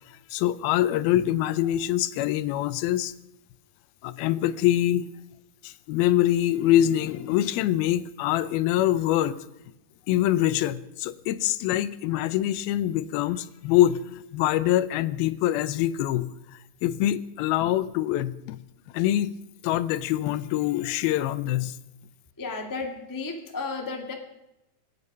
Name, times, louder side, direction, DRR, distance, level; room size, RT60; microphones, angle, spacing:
voice 1, 0.1-3.1 4.0-5.1 5.6-9.4 10.1-16.3 16.8-18.6 18.9-19.4 19.6-21.8, left 13 dB, 85° left, 15 dB, 2.5 m, -24 dB
voice 2, 22.4-24.1, left 4 dB, 30° left, 2 dB, 0.3 m, -33 dB
25.5 x 9.0 x 5.4 m, 0.90 s
omnidirectional pair, 4.3 m